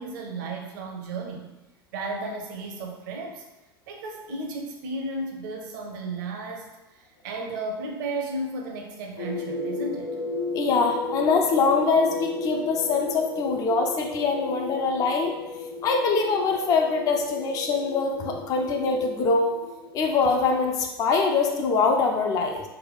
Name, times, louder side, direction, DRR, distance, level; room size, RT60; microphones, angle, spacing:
voice 1, 0.0-1.5 1.9-3.4 3.9-10.2, right 2 dB, 55° right, 1 dB, 0.7 m, -34 dB
sound 1, 9.2-20.9, left 3 dB, 85° left, 1.0 m, -34 dB
voice 2, 10.5-15.3 15.8-19.5 19.9-22.6, left 4 dB, 30° left, 3 dB, 0.4 m, -23 dB
3.4 x 2.2 x 4.0 m, 1.0 s
figure-of-eight pair, 85°, 13 cm